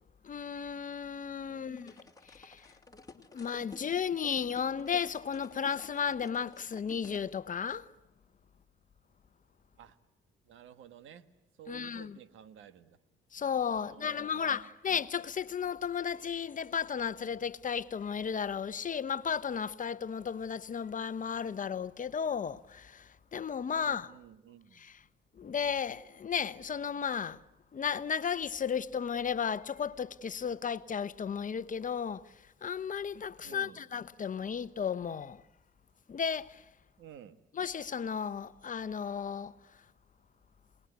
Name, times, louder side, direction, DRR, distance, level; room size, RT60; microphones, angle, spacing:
voice 1, 0.2-1.9 2.3-2.6 3.3-7.9 11.7-12.2 13.3-24.1 24.7-25.0 25.4-27.4 27.7-32.3 32.6-35.4 36.1-36.6 37.5-39.5, left 7 dB, 40° left, 1.0 m, -34 dB
voice 2, 1.5-2.1 9.8-10.0 10.4-11.3 11.6-13.0 13.7-14.7 23.8-24.9 33.4-33.8 37.0-37.4, right 9 dB, 80° right, 1.5 m, -53 dB
sound 1, 1.8-7.2, left 3 dB, 20° left, 2.5 m, -52 dB
27.5 x 19.5 x 9.6 m
cardioid pair, 90°, 20 cm